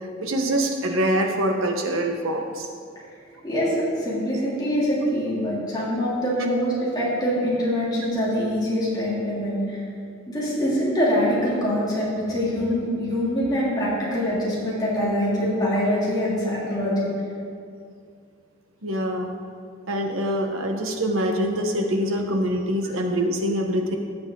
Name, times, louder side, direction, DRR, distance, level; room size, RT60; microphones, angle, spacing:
voice 1, 0.2-2.7 18.8-19.3 19.9-24.0, right 1 dB, 90° right, 3 dB, 1.3 m, -24 dB
voice 2, 3.4-9.8 10.3-17.1, equal, 20° left, -8 dB, 3.2 m, -24 dB
16.0 x 7.2 x 3.9 m, 2.2 s
head